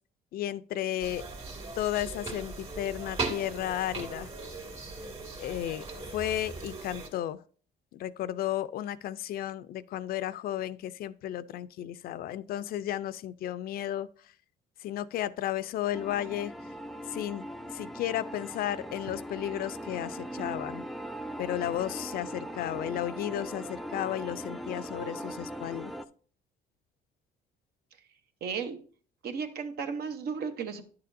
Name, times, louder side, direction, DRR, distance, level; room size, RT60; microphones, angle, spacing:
voice 1, 0.3-1.2 1.8-4.3 5.4-5.8 6.1-7.4 7.9-14.1 14.8-16.5 17.1-17.4 17.7-20.8 21.4-25.9, left 12 dB, 60° left, 0.4 m, -33 dB
sound 1, 1.0-7.1, right 3 dB, 35° right, 2.2 m, -39 dB
sound 2, 15.9-26.1, equal, ahead, 0.4 m, -40 dB
voice 2, 28.4-28.8 29.2-30.8, right 6 dB, 70° right, 1.0 m, -34 dB
10.0 x 6.7 x 2.6 m
cardioid pair, 110°, 17 cm